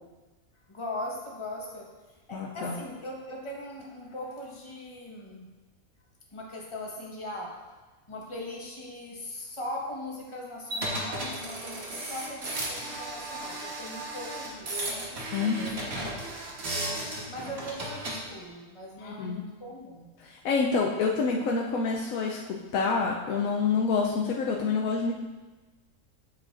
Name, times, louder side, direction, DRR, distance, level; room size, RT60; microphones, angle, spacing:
voice 1, 0.7-5.5 6.3-7.5 8.1-16.1 16.7-20.1, left 1 dB, 20° left, -3 dB, 1.2 m, -40 dB
voice 2, 2.3-2.7 15.3-15.8 19.0-19.4 20.2-25.1, left 4 dB, 90° left, -1 dB, 1.1 m, -27 dB
sound 1, 10.7-18.2, right 1 dB, 50° right, 1.5 m, -35 dB
8.6 x 7.2 x 2.5 m, 1.2 s
omnidirectional pair, 1.4 m